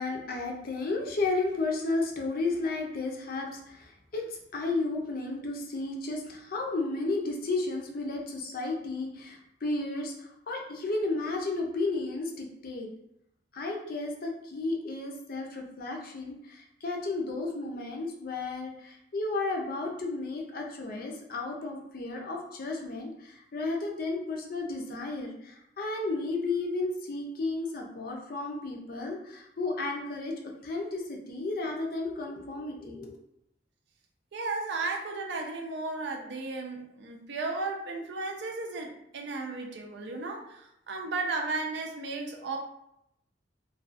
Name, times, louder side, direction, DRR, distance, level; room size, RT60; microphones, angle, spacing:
voice 1, 0.0-12.9 13.5-33.2, left 3 dB, 55° left, 1 dB, 0.5 m, -33 dB
voice 2, 34.3-42.6, right 3 dB, 65° right, 2 dB, 0.5 m, -34 dB
2.4 x 2.2 x 2.4 m, 0.80 s
head